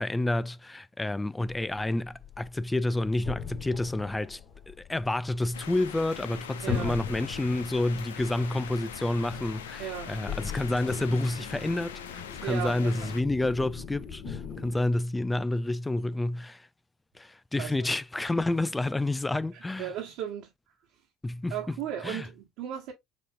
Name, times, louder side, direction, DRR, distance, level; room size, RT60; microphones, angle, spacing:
voice 1, 0.0-4.4 4.7-16.7 17.2-19.9 21.2-21.8 22.0-22.3, left 2 dB, 15° left, 0.3 m, -29 dB
sound 1, 1.4-14.8, left 8 dB, 50° left, 2.0 m, -41 dB
sound 2, 5.5-13.2, left 8 dB, 85° left, 0.6 m, -42 dB
voice 2, 6.6-7.0 9.8-10.1 12.4-13.1 17.6-18.0 19.5-20.5 21.5-22.9, right 10 dB, 70° right, 1.3 m, -36 dB
6.1 x 3.0 x 2.4 m
hypercardioid pair, 70°, 0 cm